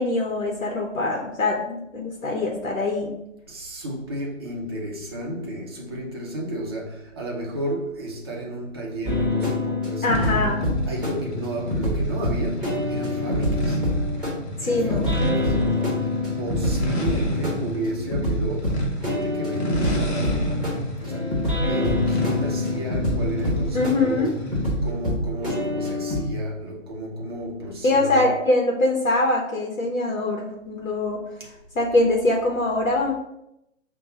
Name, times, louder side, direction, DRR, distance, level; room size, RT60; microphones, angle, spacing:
voice 1, 0.0-3.1 10.0-10.7 14.6-15.1 23.7-24.3 27.8-31.2 31.8-33.1, left 2 dB, 80° left, 0.9 m, -23 dB
voice 2, 3.5-10.5 10.9-13.8 14.6-20.6 21.0-21.4 21.7-24.4 24.8-28.3 31.4-31.5, right 1 dB, 20° right, 0.5 m, -32 dB
sound 1, 9.0-26.2, left 1 dB, ahead, 1.0 m, -26 dB
sound 2, 10.1-24.8, equal, 55° left, 0.9 m, -32 dB
5.3 x 2.2 x 3.8 m
figure-of-eight pair, 140°, 39 cm